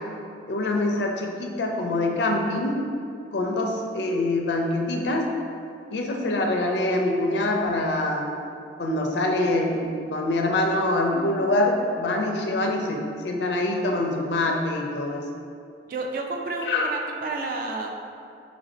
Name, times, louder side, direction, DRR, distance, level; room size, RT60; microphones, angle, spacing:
voice 1, 0.5-2.8 3.3-5.3 5.9-8.2 8.8-15.2 16.7-16.9, left 2 dB, 75° left, 1 dB, 0.4 m, -25 dB
voice 2, 15.9-18.0, right 3 dB, 50° right, 2 dB, 0.3 m, -31 dB
3.0 x 2.6 x 4.1 m, 2.4 s
head